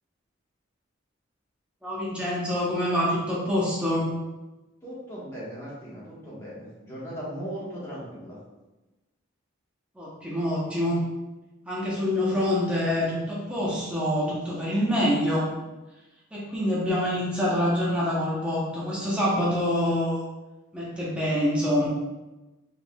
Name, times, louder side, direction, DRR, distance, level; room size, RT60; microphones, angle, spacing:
voice 1, 1.8-4.1 10.0-11.0 11.7-15.5 16.3-20.2 20.7-21.9, left 1 dB, 5° right, -7 dB, 0.8 m, -26 dB
voice 2, 4.8-8.4, equal, 15° left, -9 dB, 1.3 m, -38 dB
4.5 x 3.5 x 2.3 m, 1.1 s
head